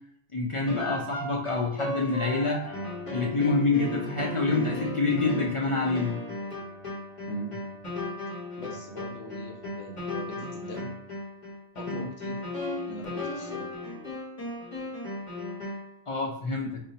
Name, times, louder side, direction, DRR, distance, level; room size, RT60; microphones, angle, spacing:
voice 1, 0.3-2.7 3.1-6.2 11.9-12.1 16.1-16.8, left 3 dB, 55° left, -2 dB, 0.3 m, -27 dB
sound 1, 0.7-16.0, left 2 dB, 35° left, 0.8 m, -36 dB
sound 2, 2.2-4.5, left 2 dB, 35° right, 0.9 m, -47 dB
voice 2, 8.6-10.9 11.7-12.4 12.9-13.7, right 1 dB, 80° left, 0 dB, 1.0 m, -41 dB
2.7 x 2.1 x 4.0 m, 0.67 s
omnidirectional pair, 1.1 m